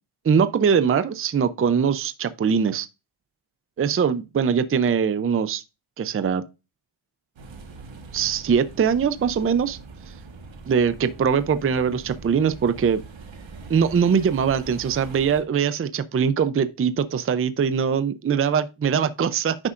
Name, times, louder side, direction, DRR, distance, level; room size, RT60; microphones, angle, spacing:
voice 1, 0.2-2.9 3.8-5.6 6.0-6.4 8.1-9.8 10.7-13.0 13.7-19.6, right 7 dB, 30° right, 0.5 m, -22 dB
sound 1, 7.4-15.4, right 3 dB, 65° right, 1.5 m, -42 dB
9.7 x 5.4 x 2.5 m
wide cardioid pair, 100°, 49 cm